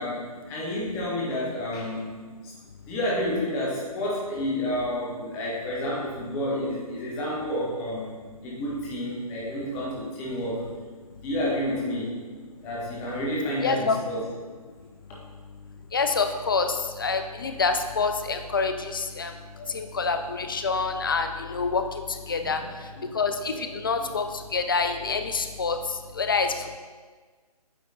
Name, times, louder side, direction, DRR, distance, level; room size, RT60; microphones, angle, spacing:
voice 1, 0.0-2.1 2.4-2.5 2.8-8.1 8.4-10.7 11.2-12.2 12.6-14.2 19.5-19.8 22.6-23.2 23.5-23.7 24.0-24.1 25.0-25.1, left 1 dB, 10° left, -5 dB, 0.9 m, -30 dB
voice 2, 13.6-14.0 15.9-16.7 17.0-19.3 19.7-21.8 22.3-22.6 23.1-24.2 24.5-25.8 26.2-26.5, left 4 dB, 35° left, 7 dB, 0.4 m, -26 dB
8.9 x 3.5 x 4.1 m, 1.4 s
figure-of-eight pair, 145°, 20 cm